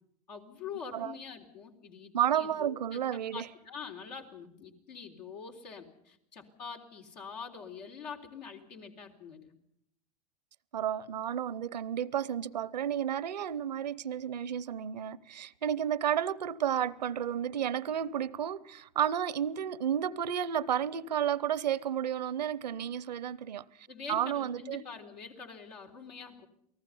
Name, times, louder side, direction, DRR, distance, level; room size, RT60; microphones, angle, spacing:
voice 1, 0.3-9.5 23.9-26.5, left 6 dB, 85° left, 3.8 m, -45 dB
voice 2, 2.1-3.5 10.7-23.6 24.1-24.8, right 9 dB, 90° right, 0.8 m, -32 dB
29.0 x 19.0 x 5.6 m
hypercardioid pair, 90°, 21 cm